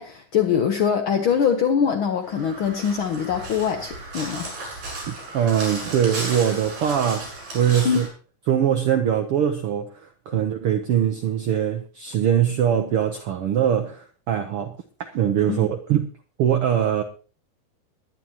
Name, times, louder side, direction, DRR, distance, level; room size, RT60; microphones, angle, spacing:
voice 1, 0.0-4.5 7.8-8.0 15.5-15.6, left 7 dB, 75° left, 1.1 m, -23 dB
Crow, 2.2-8.1, right 2 dB, 60° right, 9.5 m, -35 dB
voice 2, 5.1-7.3 7.5-8.1 8.5-16.1 16.4-17.0, right 9 dB, 80° right, 1.2 m, -22 dB
21.5 x 10.5 x 2.9 m
omnidirectional pair, 3.7 m